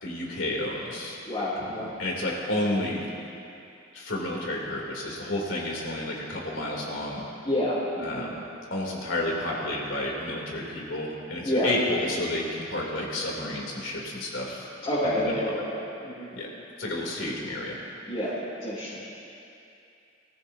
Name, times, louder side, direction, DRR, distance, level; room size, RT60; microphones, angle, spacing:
voice 1, 0.0-1.2 1.6-3.1 3.9-7.2 8.0-8.4 8.7-14.7 15.0-15.5 16.3-16.5 16.8-17.8 18.3-18.4, left 1 dB, 80° left, -3 dB, 3.2 m, -31 dB
voice 2, 1.3-1.9 7.4-8.3 11.4-11.7 14.8-15.7 16.0-16.3 18.1-19.0, left 1 dB, 30° left, -11 dB, 3.1 m, -28 dB
22.5 x 15.0 x 2.8 m, 2.7 s
head